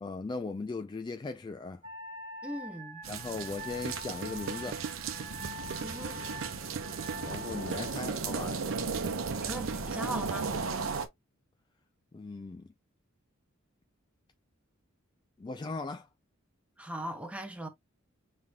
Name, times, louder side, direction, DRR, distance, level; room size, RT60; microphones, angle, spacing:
voice 1, 0.0-1.8 3.1-4.8 7.1-8.7 12.1-12.7 15.4-16.1, left 3 dB, 20° left, 0.3 m, -38 dB
Wind instrument woodwind instrument, 1.8-8.2, equal, 40° right, 1.2 m, -44 dB
voice 2, 2.4-3.0 5.8-6.2 9.4-10.5 16.8-17.7, right 1 dB, 5° right, 1.0 m, -39 dB
sound 1, 3.0-11.1, right 4 dB, 75° right, 0.8 m, -36 dB
sound 2, 3.8-10.7, right 6 dB, 60° right, 0.4 m, -41 dB
5.5 x 3.3 x 2.3 m
head